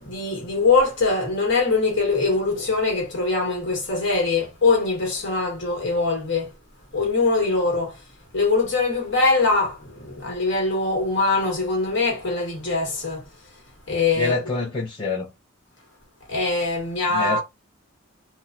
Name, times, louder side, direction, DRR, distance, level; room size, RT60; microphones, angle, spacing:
voice 1, 0.0-6.5 6.9-8.0 8.3-13.2 13.9-14.3 16.3-17.4, left 3 dB, 60° left, 1.2 m, -22 dB
voice 2, 14.2-15.3 17.1-17.4, left 3 dB, 25° left, 0.6 m, -26 dB
3.0 x 2.1 x 2.5 m
head